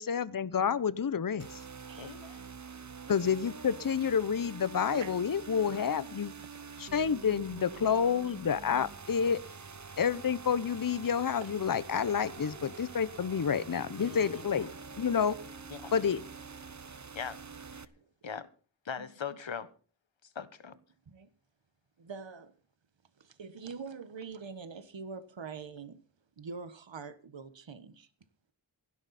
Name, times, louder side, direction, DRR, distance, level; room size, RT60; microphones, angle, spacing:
voice 1, 0.0-1.6 3.1-6.3 6.8-9.4 10.0-14.7 15.0-15.4 15.9-16.2, left 7 dB, 45° left, 17 dB, 0.8 m, -29 dB
sound 1, 1.4-17.8, right 5 dB, 35° right, 1.0 m, -46 dB
voice 2, 2.0-2.4 14.0-14.7 15.7-15.9 17.1-17.4 17.7-17.8 18.2-18.5 18.8-19.7 20.2-20.7, left 6 dB, 70° left, 13 dB, 1.3 m, -41 dB
voice 3, 22.0-22.5 23.2-26.0 26.4-28.1, right 5 dB, 70° right, 12 dB, 1.3 m, -44 dB
16.5 x 12.0 x 4.2 m, 0.38 s
wide cardioid pair, 50°, 47 cm